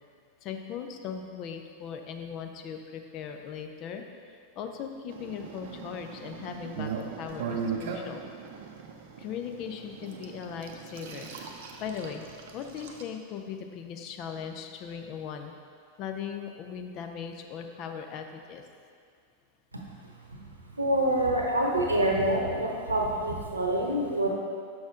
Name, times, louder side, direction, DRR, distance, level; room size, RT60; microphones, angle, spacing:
voice 1, 0.4-4.0 4.3-8.2 9.2-11.3 11.8-12.2 12.5-15.5 16.0-18.6 21.4-21.7 22.5-22.7, left 7 dB, 40° left, 5 dB, 0.5 m, -39 dB
sound 1, 5.1-13.0, right 6 dB, 55° right, 0.6 m, -39 dB
voice 2, 20.7-24.3, right 1 dB, 80° right, -1 dB, 0.9 m, -26 dB
6.2 x 6.2 x 3.7 m, 2.2 s
figure-of-eight pair, 90°, 0 cm